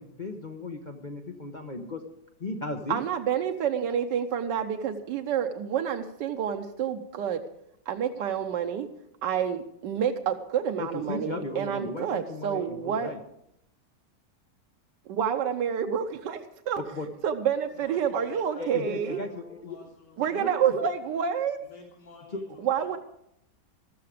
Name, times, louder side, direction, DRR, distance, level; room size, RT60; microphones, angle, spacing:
voice 1, 0.0-2.0 2.4-3.0 10.8-13.2 16.7-17.1 18.6-19.8 20.2-20.6 22.3-22.4, left 2 dB, 35° left, 4 dB, 0.9 m, -36 dB
voice 2, 2.9-7.4 7.9-8.9 9.2-13.1 15.1-16.8 17.2-19.2 20.2-21.6 22.6-23.0, right 8 dB, 90° right, 5 dB, 1.4 m, -28 dB
voice 3, 17.7-21.0 21.6-23.0, left 3 dB, 85° left, -1 dB, 2.9 m, -50 dB
13.5 x 13.5 x 5.0 m, 0.78 s
omnidirectional pair, 1.8 m